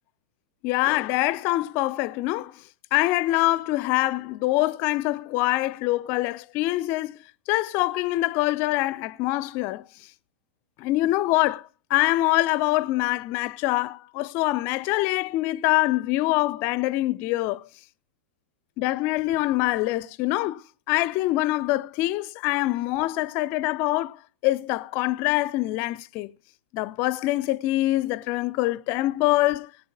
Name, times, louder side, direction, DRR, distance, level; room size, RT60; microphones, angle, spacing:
voice 1, 0.6-2.6 2.9-7.2 7.5-9.9 10.8-17.7 18.8-20.6 20.9-26.3 26.7-29.7, left 18 dB, 35° left, 0.5 m, -24 dB
19.5 x 8.7 x 3.6 m
figure-of-eight pair, 100°, 6 cm